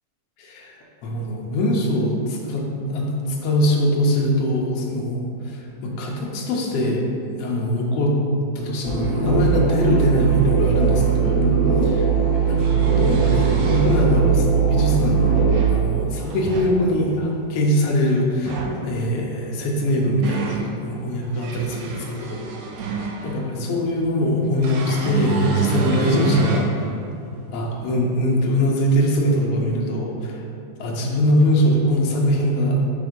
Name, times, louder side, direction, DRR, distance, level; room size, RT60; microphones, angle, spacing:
voice 1, 0.4-0.7 1.0-7.0 7.4-8.2 8.5-11.5 11.8-12.1 12.5-12.6 12.8-15.4 15.7-22.4 23.2-26.9 27.5-30.4 30.8-32.9, equal, 75° left, -2 dB, 1.5 m, -22 dB
sound 1, 8.8-15.5, right 6 dB, 60° right, 1.9 m, -19 dB
sound 2, 11.4-11.5 12.4-14.0 15.1-15.8 16.3-16.7 18.3-18.8 19.7-20.7 21.2-23.4 24.6-26.7 27.3-27.4 28.9-29.0, right 4 dB, 80° right, 1.7 m, -28 dB
6.0 x 3.2 x 5.1 m, 2.5 s
omnidirectional pair, 3.6 m